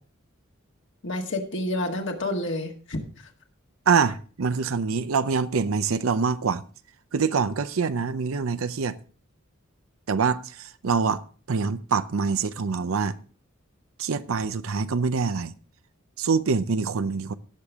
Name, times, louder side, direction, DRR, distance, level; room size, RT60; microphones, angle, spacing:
voice 1, 1.0-3.3, left 1 dB, 60° left, 1.7 m, -29 dB
voice 2, 3.9-6.6 7.1-9.0 10.1-13.2 14.0-15.5 16.2-17.3, right 5 dB, 75° right, 0.6 m, -25 dB
17.0 x 6.8 x 3.5 m
head